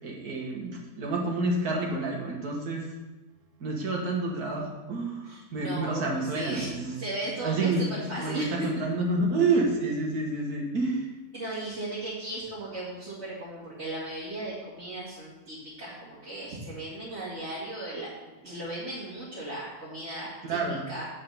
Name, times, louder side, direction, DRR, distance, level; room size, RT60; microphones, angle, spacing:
voice 1, 0.0-2.9 3.6-7.0 7.4-11.1 20.4-20.8, right 2 dB, 75° right, -1 dB, 2.0 m, -29 dB
voice 2, 5.3-8.7 11.3-20.6 20.9-21.1, right 1 dB, 45° right, -9 dB, 2.2 m, -36 dB
9.1 x 4.8 x 5.5 m, 1.1 s
omnidirectional pair, 1.6 m